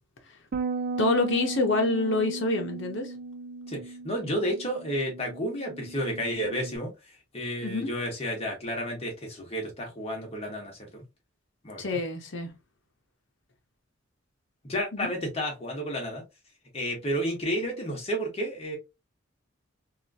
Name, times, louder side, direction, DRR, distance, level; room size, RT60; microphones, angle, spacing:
Bass guitar, 0.5-6.8, right 3 dB, 50° right, 0.3 m, -36 dB
voice 1, 1.0-3.1 7.6-7.9 11.8-12.5 14.9-15.1, left 2 dB, 60° left, 0.9 m, -27 dB
voice 2, 3.7-6.9 7.3-11.0 11.6-12.0 14.7-16.2 16.7-18.8, equal, 30° left, 1.1 m, -31 dB
2.9 x 2.4 x 2.7 m
head